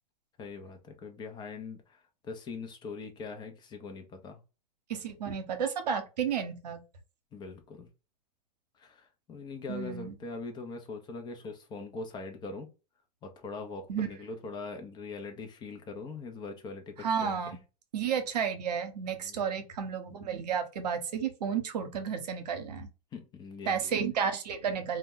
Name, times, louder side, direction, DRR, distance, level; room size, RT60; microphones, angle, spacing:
voice 1, 0.4-2.0 2.2-4.4 7.3-7.9 8.8-12.7 13.2-17.6 19.2-19.5 23.1-23.9, left 4 dB, 20° left, 0.6 m, -42 dB
voice 2, 4.9-6.8 9.7-10.1 13.9-14.1 17.0-17.6 17.9-22.9 23.7-25.0, right 7 dB, 90° right, 0.7 m, -32 dB
2.2 x 2.1 x 3.6 m
hypercardioid pair, 125°, 20 cm